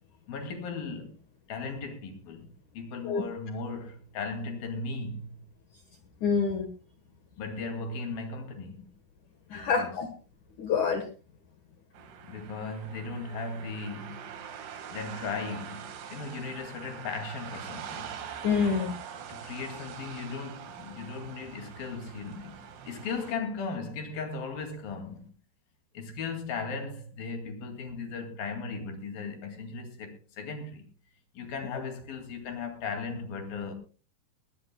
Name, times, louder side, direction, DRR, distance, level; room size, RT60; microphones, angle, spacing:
voice 1, 0.3-1.2 1.5-2.5 2.7-5.5 7.4-8.9 9.5-10.0 12.2-14.5 14.9-18.1 19.3-22.6 22.9-25.3 25.9-30.9 31.3-33.7, left 4 dB, 55° left, 3.6 m, -37 dB
voice 2, 6.2-6.7 9.5-10.1 10.6-11.0 18.4-18.9, left 5 dB, 75° left, 1.8 m, -26 dB
sound 1, 11.9-23.3, right 8 dB, 65° right, 3.5 m, -44 dB
20.0 x 16.5 x 2.2 m
omnidirectional pair, 5.4 m